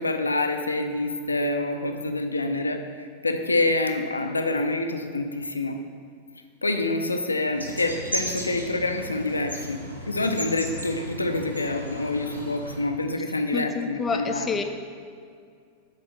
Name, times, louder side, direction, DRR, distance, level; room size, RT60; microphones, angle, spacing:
voice 1, 0.0-5.8 6.6-14.5, left 2 dB, 80° left, 6 dB, 0.5 m, -27 dB
sound 1, 7.5-12.8, equal, 85° right, 1.0 m, -35 dB
voice 2, 13.5-14.6, left 5 dB, 20° left, 6 dB, 0.6 m, -28 dB
7.7 x 4.1 x 6.0 m, 2.2 s
figure-of-eight pair, 90°, 0 cm